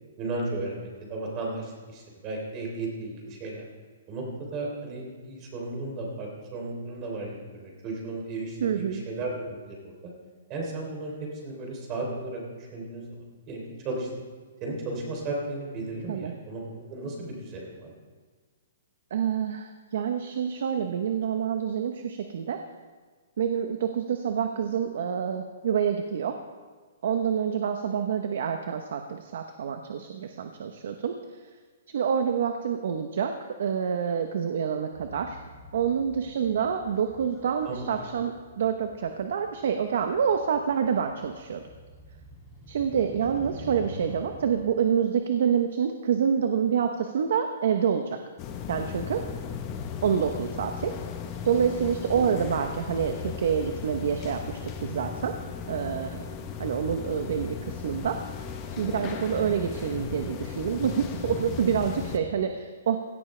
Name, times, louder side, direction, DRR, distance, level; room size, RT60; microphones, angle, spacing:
voice 1, 0.2-3.6 4.1-10.1 10.5-11.1 11.4-14.1 14.6-16.6 16.9-17.9 37.7-37.9 52.3-52.4, right 2 dB, 25° right, -1 dB, 3.4 m, -35 dB
voice 2, 8.6-9.0 16.1-16.3 19.1-22.6 23.4-26.4 27.0-31.1 31.9-33.3 33.6-35.4 35.7-41.6 42.7-48.2 48.7-49.2 50.0-51.0 51.4-55.4 55.7-56.3 56.6-58.2 58.7-63.0, right 7 dB, 60° right, 6 dB, 0.9 m, -27 dB
Motorcycle, 34.9-44.7, equal, 5° left, 3.9 m, -47 dB
sound 1, 48.4-62.2, left 6 dB, 25° left, 1.0 m, -36 dB
17.0 x 14.0 x 3.3 m, 1.5 s
hypercardioid pair, 165°, 0 cm